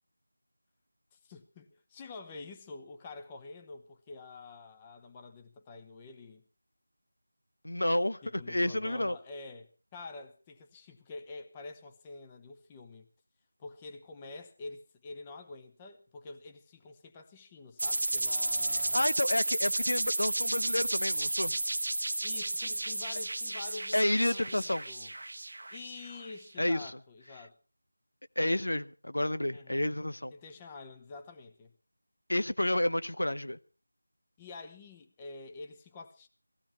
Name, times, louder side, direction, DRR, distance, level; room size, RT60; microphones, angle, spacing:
voice 1, 1.1-6.4 8.2-13.1 13.6-19.0 22.2-25.1 25.7-27.6 29.5-29.9 30.3-31.7 34.4-36.3, left 3 dB, 15° left, 0.9 m, -47 dB
voice 2, 7.6-9.2 18.7-21.6 23.9-24.8 26.6-26.9 28.4-30.3 32.3-33.6, left 1 dB, 85° left, 0.8 m, -30 dB
sound 1, 17.8-26.3, right 2 dB, 60° right, 1.0 m, -32 dB
18.0 x 15.5 x 4.4 m
figure-of-eight pair, 170°, 0 cm